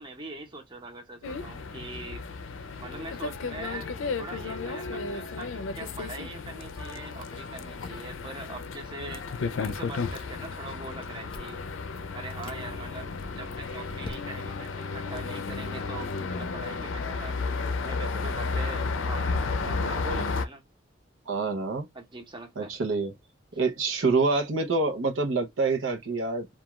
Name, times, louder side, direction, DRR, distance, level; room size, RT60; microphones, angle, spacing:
voice 1, 0.0-2.2 2.8-9.3 9.6-11.6 12.1-20.6 21.9-22.7 23.5-23.6, right 3 dB, 25° right, 0.7 m, -42 dB
sound 1, 1.2-20.5, left 4 dB, 80° left, 0.4 m, -33 dB
Chewing mastication, 9.6-10.6 10.8-11.7 12.2-12.6 13.2-14.6, left 2 dB, 25° left, 0.5 m, -45 dB
voice 2, 21.3-21.9 22.6-23.1 23.6-26.5, right 3 dB, 85° right, 0.7 m, -26 dB
2.4 x 2.3 x 3.0 m
head